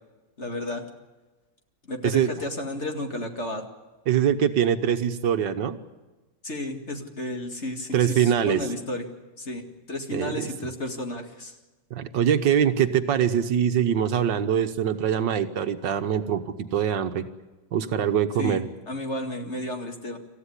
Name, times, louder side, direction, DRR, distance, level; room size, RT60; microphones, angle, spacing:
voice 1, 0.4-0.8 1.9-3.6 6.4-9.0 9.4-9.6 9.9-11.6 18.4-20.2, left 1 dB, 35° left, 4 dB, 2.3 m, -32 dB
voice 2, 4.1-5.8 7.9-8.6 10.1-10.5 11.9-17.3 17.7-18.7, right 9 dB, 70° right, 8 dB, 1.7 m, -23 dB
27.0 x 14.5 x 9.9 m, 1.2 s
omnidirectional pair, 2.0 m